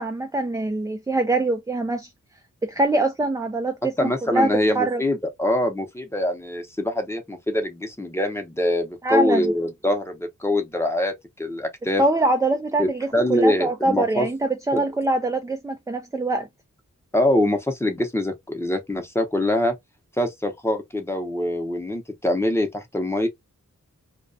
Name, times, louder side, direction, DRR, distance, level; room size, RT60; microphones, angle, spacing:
voice 1, 0.0-2.1 2.6-5.0 9.0-9.5 12.0-16.5, right 2 dB, 10° right, 0.3 m, -24 dB
voice 2, 4.0-12.0 12.8-14.3 14.7-14.9 17.1-19.7 20.2-23.3, left 1 dB, 10° left, 0.7 m, -24 dB
2.3 x 2.2 x 2.6 m
wide cardioid pair, 70°, 32 cm